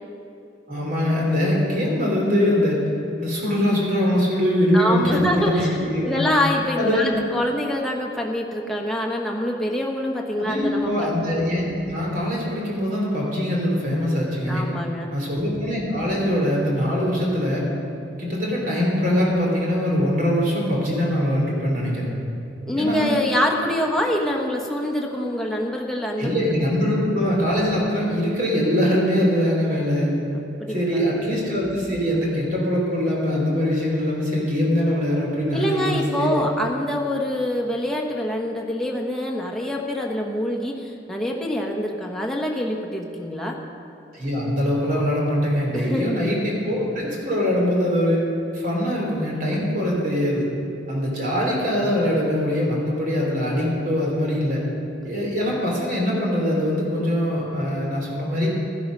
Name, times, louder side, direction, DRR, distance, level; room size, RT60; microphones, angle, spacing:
voice 1, 0.7-2.8 3.2-6.2 6.8-7.2 10.4-14.7 15.1-17.6 18.2-22.1 22.7-23.1 26.2-30.1 30.7-36.4 44.1-48.2 48.5-50.5 50.9-54.6 55.0-58.5, equal, 50° right, -3 dB, 3.4 m, -22 dB
voice 2, 4.7-11.1 14.5-15.1 22.7-26.3 30.3-31.0 35.5-43.6 45.7-46.2, left 1 dB, ahead, -1 dB, 1.2 m, -25 dB
13.0 x 12.0 x 5.4 m, 2.8 s
head